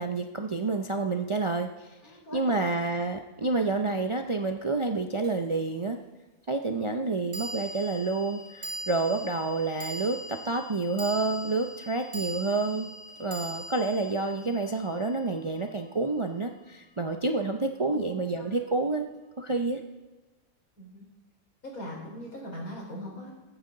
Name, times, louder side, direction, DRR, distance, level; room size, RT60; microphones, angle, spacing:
voice 1, 0.0-6.0 6.5-12.9 13.2-19.0 19.4-19.8, right 3 dB, 40° right, 5 dB, 0.4 m, -29 dB
voice 2, 2.0-2.6 17.9-18.5 20.8-21.1 21.6-23.3, equal, 85° left, -3 dB, 4.7 m, -40 dB
sound 1, 5.2-5.3 7.3-15.8, right 1 dB, 65° right, 2.5 m, -41 dB
21.5 x 9.2 x 3.8 m, 1.2 s
omnidirectional pair, 1.5 m